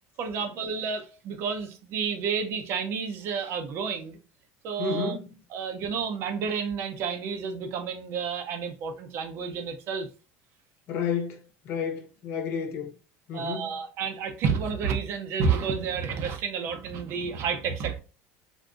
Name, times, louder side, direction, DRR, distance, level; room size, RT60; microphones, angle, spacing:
voice 1, 0.2-4.2 4.6-5.1 5.5-10.1 13.3-18.0, right 6 dB, 50° right, 0.6 m, -30 dB
voice 2, 4.8-5.4 10.9-12.9 13.3-13.7, left 6 dB, 50° left, 0.9 m, -31 dB
3.7 x 2.6 x 2.3 m
cardioid pair, 130°, 5 cm